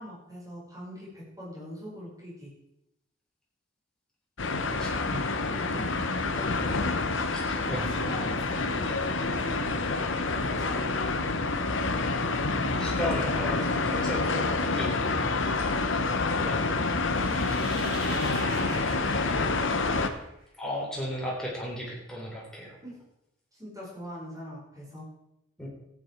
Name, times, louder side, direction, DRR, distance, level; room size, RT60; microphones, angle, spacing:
voice 1, 0.0-2.5 5.0-5.1 5.5-7.2 7.6-11.2 15.6-15.8 18.2-19.6 22.8-23.0 23.5-25.1, equal, 15° right, -6 dB, 5.4 m, -43 dB
sound 1, 4.4-20.1, left 3 dB, 65° left, 1.1 m, -28 dB
voice 2, 4.5-5.2 7.3-7.9 12.8-14.9 16.4-16.6 20.6-22.8 25.6-25.7, left 1 dB, 5° left, -5 dB, 3.6 m, -35 dB
sound 2, 16.8-20.4, right 2 dB, 85° right, 4.5 m, -43 dB
14.0 x 9.5 x 4.7 m, 0.84 s
head